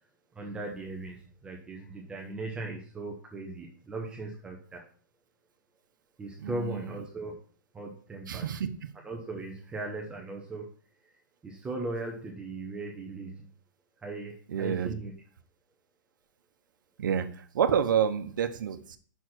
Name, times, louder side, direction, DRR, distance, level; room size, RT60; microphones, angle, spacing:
voice 1, 0.3-4.9 6.2-7.4 7.7-8.5 9.0-10.7 11.4-13.4 14.0-15.1, right 2 dB, 10° right, 0 dB, 0.8 m, -38 dB
voice 2, 6.4-6.8 8.3-8.7 14.5-14.9 17.0-19.0, right 8 dB, 80° right, 9 dB, 0.9 m, -28 dB
6.0 x 4.7 x 6.1 m, 0.44 s
hypercardioid pair, 160°, 10 cm